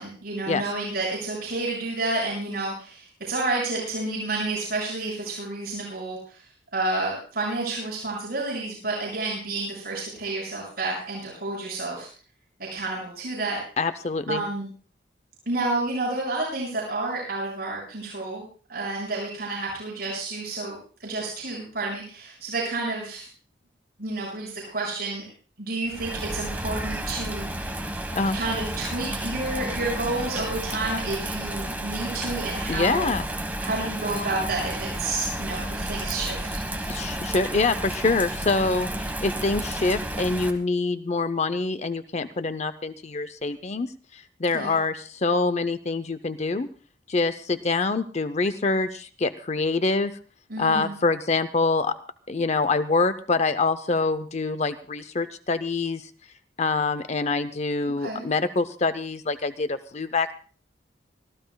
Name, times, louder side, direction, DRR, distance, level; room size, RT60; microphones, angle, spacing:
voice 1, 0.0-6.4 6.7-12.1 12.7-13.6 14.3-14.7 15.5-18.4 18.7-23.3 24.0-25.3 25.6-27.5 28.3-33.1 33.6-37.3 44.5-44.8 50.5-50.9 58.0-58.3, right 2 dB, 60° right, -4 dB, 6.9 m, -30 dB
voice 2, 13.8-14.4 28.1-28.4 32.7-33.3 36.9-46.7 47.1-50.2 50.6-52.0 52.3-56.1 56.6-60.3, left 3 dB, 40° left, 11 dB, 0.6 m, -25 dB
Bird vocalization bird call bird song / Rain, 25.9-40.5, right 1 dB, 10° right, 1.4 m, -32 dB
25.0 x 15.0 x 2.3 m, 0.40 s
head